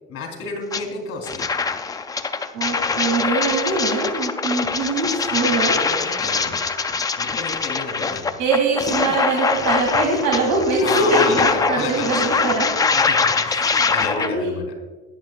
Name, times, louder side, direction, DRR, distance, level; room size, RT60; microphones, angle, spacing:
voice 1, 0.1-1.4 5.3-6.7 7.2-8.3 10.8-12.4 12.9-14.7, left 4 dB, 50° left, 2 dB, 3.3 m, -31 dB
sound 1, 0.7-0.8 1.2-14.3, left 5 dB, 15° left, 0.3 m, -23 dB
voice 2, 2.5-5.8 8.4-12.7 13.5-13.7 14.0-14.5, right 3 dB, 85° right, -1 dB, 2.3 m, -22 dB
17.0 x 10.5 x 2.4 m, 1.3 s
cardioid pair, 155°, 30 cm